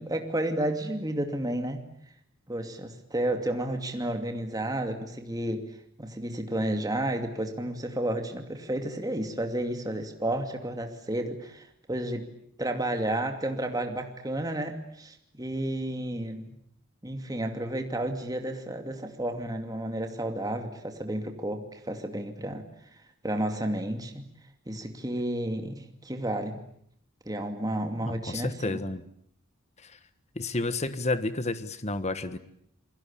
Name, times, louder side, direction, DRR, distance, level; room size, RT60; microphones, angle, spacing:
voice 1, 0.0-1.8 2.5-5.7 6.0-12.3 12.6-16.6 17.0-22.7 23.2-24.3 24.7-26.6 27.3-28.8, right 1 dB, 15° right, 5 dB, 2.5 m, -31 dB
voice 2, 28.0-29.0 29.8-29.9 30.3-32.4, left 2 dB, 30° left, 12 dB, 1.4 m, -31 dB
29.0 x 22.5 x 8.7 m, 0.70 s
head